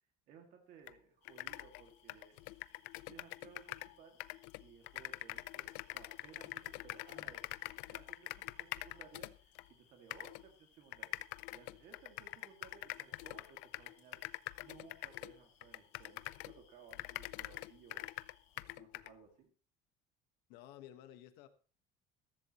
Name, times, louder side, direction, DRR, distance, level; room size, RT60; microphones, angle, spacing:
voice 1, 0.3-2.4 3.1-4.2 4.6-7.4 7.9-11.1 11.5-14.2 14.6-18.1 18.5-19.5, right 7 dB, 50° right, 4 dB, 2.2 m, -60 dB
sound 1, 0.9-1.0 1.2-3.9 4.2-9.7 10.1-10.4 10.9-16.6 16.9-19.1, left 20 dB, 85° left, 0.6 m, -45 dB
sound 2, 1.2-18.6, left 7 dB, 40° left, 3.4 m, -71 dB
voice 2, 20.5-21.5, left 12 dB, 70° left, 9 dB, 1.4 m, -53 dB
14.5 x 14.0 x 3.0 m, 0.37 s
cardioid pair, 175°, 17 cm